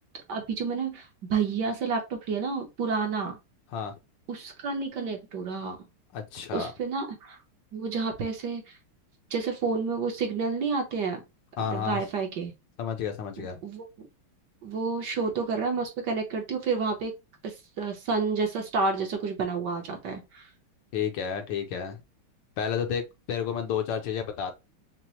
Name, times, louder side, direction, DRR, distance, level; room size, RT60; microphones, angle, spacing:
voice 1, 0.3-3.4 4.3-5.8 6.5-7.4 7.7-8.7 9.3-11.2 11.7-12.5 13.4-13.9 14.6-17.1 17.4-20.5, right 4 dB, 65° right, 1.3 m, -30 dB
voice 2, 6.1-6.7 11.6-12.0 12.8-13.6 20.9-22.0 22.6-24.5, left 7 dB, 70° left, 1.3 m, -31 dB
6.1 x 2.0 x 2.8 m
omnidirectional pair, 2.3 m